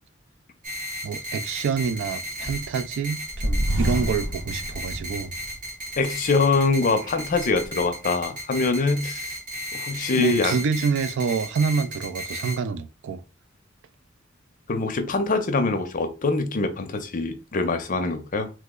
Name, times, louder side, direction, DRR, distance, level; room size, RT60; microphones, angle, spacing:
sound 1, 0.6-12.6, equal, 40° right, 0.8 m, -35 dB
voice 1, 1.0-5.3 10.1-13.2, right 5 dB, 65° right, 0.3 m, -27 dB
sound 2, 1.9-2.8 3.3-5.7 6.1-6.2 6.9-7.7, equal, 80° right, 1.0 m, -29 dB
voice 2, 6.0-9.3 9.7-10.5 14.7-18.5, left 3 dB, 40° left, 0.5 m, -24 dB
3.1 x 2.0 x 3.6 m
head